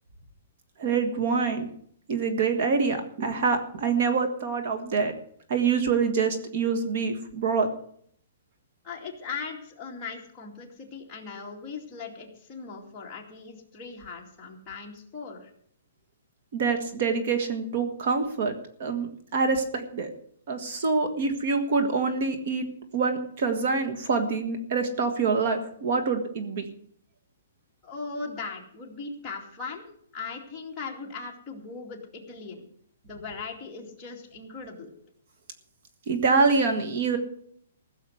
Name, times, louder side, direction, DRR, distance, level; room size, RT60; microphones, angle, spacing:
voice 1, 0.8-1.7 2.1-5.1 5.5-7.7 16.5-18.5 18.8-20.1 20.5-22.7 22.9-26.6 36.1-37.2, right 4 dB, 45° right, 7 dB, 1.6 m, -25 dB
voice 2, 8.8-15.5 27.8-29.8 30.1-32.6 33.0-34.9, left 4 dB, 15° left, -3 dB, 2.4 m, -39 dB
16.0 x 7.2 x 8.0 m, 0.64 s
hypercardioid pair, 170°, 0 cm